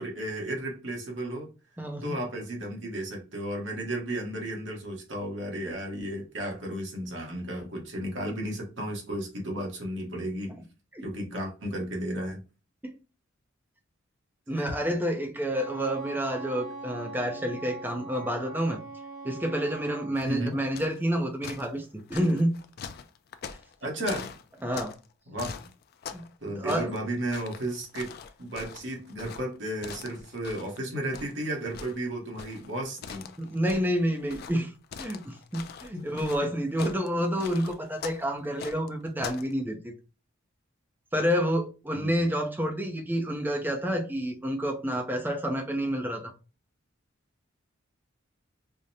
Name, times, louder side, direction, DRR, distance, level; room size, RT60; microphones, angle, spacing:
voice 1, 0.0-1.5 2.0-10.5 11.0-12.4 14.5-14.7 20.2-20.6 23.8-24.3 25.3-25.6 26.4-28.1 28.4-33.3 35.9-36.1 36.4-36.5 41.9-42.3, right 1 dB, 60° right, 1.1 m, -34 dB
voice 2, 1.8-2.1 10.9-11.0 12.8-12.9 14.5-18.8 19.2-22.5 24.6-24.9 26.1-26.9 33.4-34.7 35.0-39.9 41.1-46.3, equal, 10° right, 0.5 m, -29 dB
Wind instrument woodwind instrument, 15.5-20.1, right 3 dB, 80° left, 1.0 m, -41 dB
sound 1, 20.1-21.1 21.4-25.1 25.4-26.3 26.6-30.8 31.1-39.5, left 7 dB, 50° left, 0.3 m, -42 dB
4.9 x 2.1 x 2.7 m
head